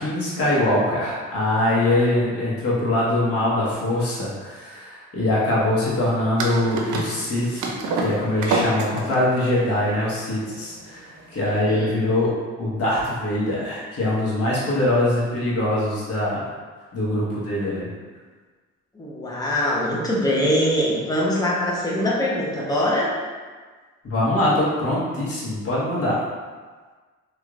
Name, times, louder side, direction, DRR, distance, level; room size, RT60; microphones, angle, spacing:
voice 1, 0.0-12.3 12.6-16.4 16.9-17.9 24.0-26.2, left 1 dB, 50° left, -7 dB, 1.3 m, -23 dB
sound 1, 6.4-11.5, right 3 dB, 75° right, 0.6 m, -28 dB
voice 2, 11.4-11.9 18.9-23.1, equal, 10° left, -5 dB, 0.8 m, -23 dB
3.1 x 3.1 x 2.5 m, 1.4 s
cardioid pair, 90°, 30 cm